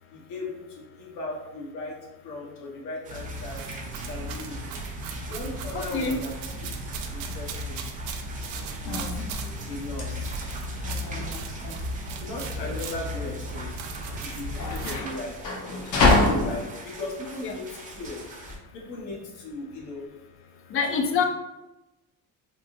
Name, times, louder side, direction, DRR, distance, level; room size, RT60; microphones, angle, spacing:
voice 1, 0.1-2.0 2.2-3.6 4.1-4.6 5.2-6.3 7.1-7.8 8.8-9.2 9.7-10.3 11.0-11.2 12.2-13.7 14.2-15.4 16.4-17.7 17.9-18.2 18.7-20.1 20.9-21.1, left 2 dB, 75° left, -2 dB, 1.1 m, -37 dB
sound 1, 3.0-18.6, right 3 dB, 25° right, 0.5 m, -44 dB
sound 2, 3.1-15.0, right 1 dB, 85° right, 0.5 m, -35 dB
voice 2, 5.7-6.2 14.8-15.1 17.4-17.5 20.7-21.2, left 5 dB, 40° left, 5 dB, 0.4 m, -26 dB
sound 3, 8.5-18.6, left 2 dB, 60° left, 0.8 m, -28 dB
3.5 x 2.4 x 2.6 m, 1.0 s
cardioid pair, 130°, 34 cm